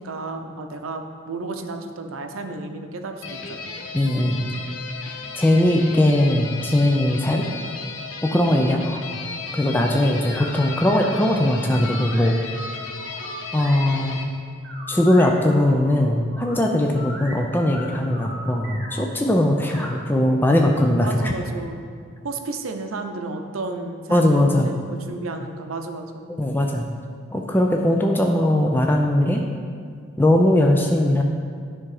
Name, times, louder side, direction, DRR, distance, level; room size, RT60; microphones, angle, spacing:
voice 1, 0.0-3.7 8.6-8.9 19.6-20.1 21.0-21.9 22.2-24.8 25.1-26.3, right 3 dB, 90° right, 6 dB, 0.6 m, -32 dB
sound 1, 3.2-14.2, left 4 dB, 70° left, 0.7 m, -35 dB
voice 2, 3.9-4.4 5.4-7.4 8.2-9.0 9.6-12.4 13.5-14.2 14.9-21.3 24.1-24.7 26.3-26.9 27.3-29.4 30.2-31.2, left 1 dB, 10° left, 1 dB, 0.4 m, -19 dB
sound 2, 10.3-14.2 14.6-16.5 16.9-19.1 19.5-21.0, equal, 55° right, 1.5 m, -39 dB
10.0 x 3.6 x 4.8 m, 2.1 s
head